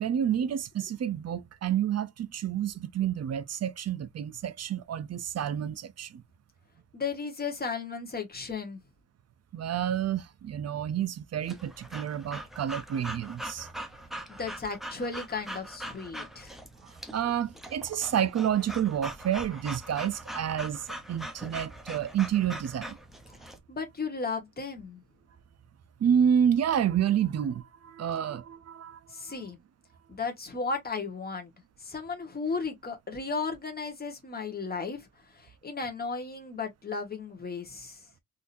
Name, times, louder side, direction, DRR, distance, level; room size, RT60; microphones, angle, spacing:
voice 1, 0.0-6.2 9.5-13.7 16.8-23.0 26.0-29.0, right 9 dB, 55° right, 0.5 m, -29 dB
voice 2, 6.9-8.8 14.3-16.5 23.7-25.0 29.1-29.6 30.1-31.5 31.8-38.1, left 4 dB, 30° left, 1.3 m, -35 dB
Breathing / Dog, 11.5-23.6, right 1 dB, ahead, 0.6 m, -42 dB
3.7 x 2.7 x 2.5 m
wide cardioid pair, 145°, 31 cm